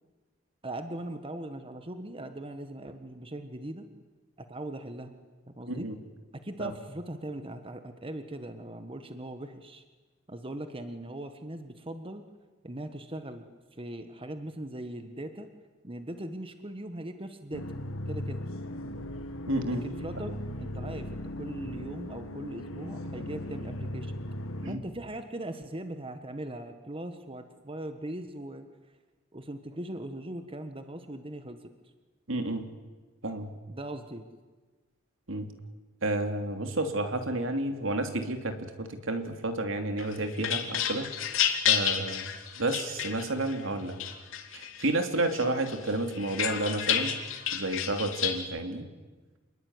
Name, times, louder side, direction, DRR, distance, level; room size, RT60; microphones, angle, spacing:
voice 1, 0.6-3.9 4.5-5.1 5.5-5.9 6.4-9.8 10.3-12.2 12.6-13.4 13.7-15.5 15.8-17.6 18.1-18.5 19.7-24.1 24.7-28.7 29.3-31.7 33.7-34.3, right 1 dB, 25° right, 8 dB, 1.5 m, -40 dB
voice 2, 5.7-6.0 6.6-6.7 19.5-19.8 20.2-20.3 24.6-24.8 32.3-32.7 33.2-33.5 35.3-35.5 36.0-44.0 44.5-47.1 47.5-48.9, right 2 dB, 70° right, 6 dB, 2.9 m, -31 dB
sound 1, 17.5-24.7, left 1 dB, 90° left, 2.0 m, -38 dB
sound 2, 40.0-43.5 44.0-44.9 45.3-48.4, left 9 dB, 70° left, 2.9 m, -30 dB
28.0 x 21.0 x 9.8 m, 1.3 s
head